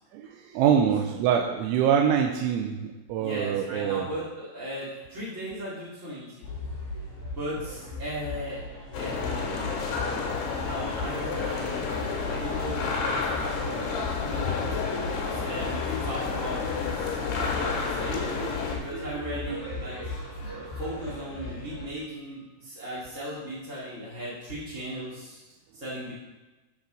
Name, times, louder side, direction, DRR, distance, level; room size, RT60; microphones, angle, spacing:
voice 1, 0.1-4.1 10.1-10.7 15.2-15.3 18.9-19.6, right 8 dB, 85° right, 2 dB, 3.0 m, -26 dB
voice 2, 3.2-6.8 7.3-8.6 8.9-9.9 10.6-14.6 15.3-17.1 17.3-18.4 18.7-20.2 20.5-25.4 25.7-26.1, equal, 35° right, -9 dB, 1.2 m, -37 dB
sound 1, 6.4-21.8, left 2 dB, 60° left, 4.9 m, -38 dB
sound 2, 8.9-18.8, left 5 dB, 75° left, 3.7 m, -30 dB
14.0 x 4.7 x 5.0 m, 1.1 s
omnidirectional pair, 5.5 m